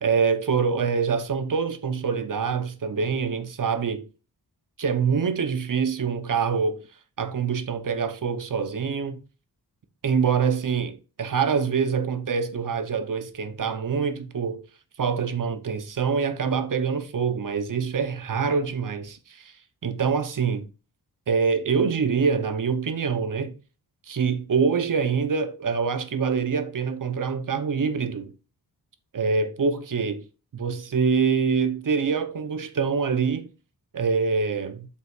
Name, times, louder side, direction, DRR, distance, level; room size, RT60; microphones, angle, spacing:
voice 1, 0.0-4.1 4.8-6.8 7.2-9.2 10.0-14.6 15.0-19.5 19.8-20.7 21.3-23.5 24.1-28.3 29.1-30.2 30.5-33.5 33.9-34.9, right 5 dB, 50° right, 0.8 m, -25 dB
7.8 x 5.5 x 2.4 m
wide cardioid pair, 175°, 41 cm